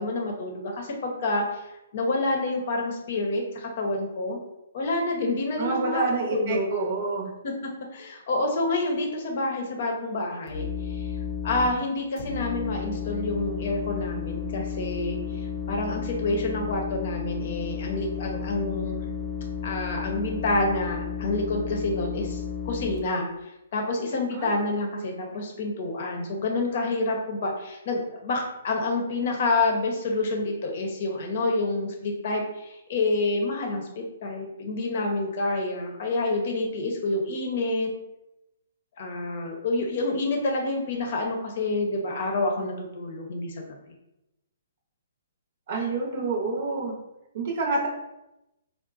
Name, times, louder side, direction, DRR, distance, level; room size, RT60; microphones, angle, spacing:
voice 1, 0.0-1.6 1.9-4.4 4.7-6.0 6.3-6.7 7.4-11.1 11.4-15.4 15.7-19.1 19.6-23.3 23.7-37.9 39.0-43.6, left 2 dB, 55° left, 1 dB, 0.7 m, -28 dB
voice 2, 5.6-7.3 24.3-24.5 45.7-46.9 47.3-47.9, right 3 dB, 50° right, -1 dB, 0.6 m, -27 dB
sound 1, 10.5-11.7 12.2-23.0, left 7 dB, 25° left, 0.7 m, -33 dB
3.9 x 2.1 x 2.4 m, 0.91 s
hypercardioid pair, 145°, 0 cm